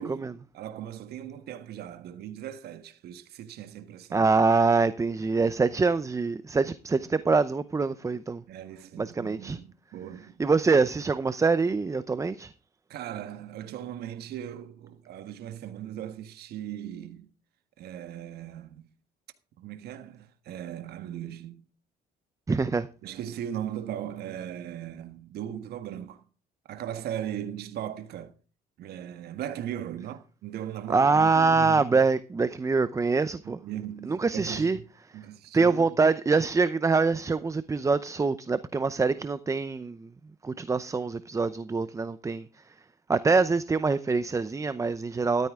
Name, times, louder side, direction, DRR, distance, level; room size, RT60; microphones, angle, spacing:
voice 1, 0.0-4.3 6.6-6.7 8.5-10.4 12.9-17.3 17.8-18.9 19.6-21.7 23.0-26.2 26.7-28.3 28.8-32.0 33.4-34.8 35.1-35.9, right 10 dB, 70° right, 1.5 m, -38 dB
voice 2, 4.1-8.4 9.0-9.6 10.4-12.5 22.5-22.9 30.9-33.6 34.1-34.8 35.5-40.1 40.4-42.7 43.1-45.5, right 4 dB, 20° right, 0.7 m, -25 dB
13.5 x 13.0 x 3.6 m
cardioid pair, 110°, 17 cm